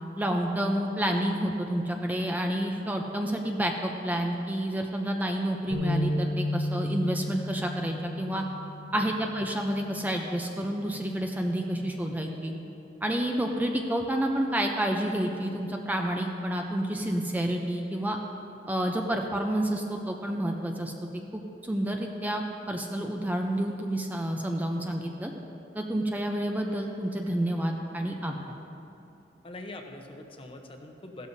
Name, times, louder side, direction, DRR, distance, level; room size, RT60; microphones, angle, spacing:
voice 1, 0.2-8.4 8.9-12.5 13.0-18.2 18.7-20.9 21.3-22.4 22.7-25.3 25.8-28.5, right 1 dB, 10° right, 2 dB, 0.5 m, -29 dB
sound 1, 5.7-12.0, left 1 dB, 80° right, 2.9 m, -34 dB
voice 2, 29.4-31.3, left 2 dB, 30° left, 4 dB, 0.9 m, -43 dB
15.5 x 12.0 x 2.7 m, 2.8 s
head